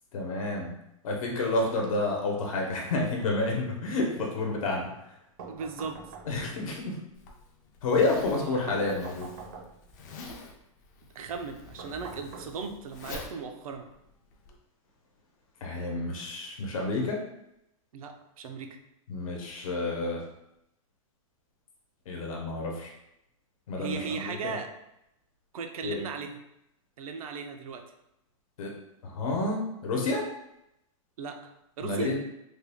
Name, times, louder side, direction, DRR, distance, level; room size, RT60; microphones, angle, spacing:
voice 1, 0.1-0.7 1.0-4.9 6.3-7.0 7.8-9.3 15.6-17.2 19.1-20.2 22.1-22.9 23.7-24.6 25.8-26.0 28.6-28.7 29.0-30.2 31.8-32.1, left 2 dB, 75° left, -1 dB, 0.9 m, -29 dB
sound 1, 5.4-6.7 8.7-10.0 11.8-13.0, right 4 dB, 40° right, 0.5 m, -45 dB
voice 2, 5.5-6.1 8.1-8.7 11.1-13.9 17.9-18.8 23.8-24.7 25.5-26.4 27.0-27.8 31.2-31.5 31.8-32.1, right 5 dB, 90° right, 5 dB, 0.6 m, -37 dB
Zipper (clothing), 7.1-14.6, left 3 dB, 30° left, 0.4 m, -46 dB
3.4 x 2.2 x 3.5 m, 0.83 s
supercardioid pair, 175°, 18 cm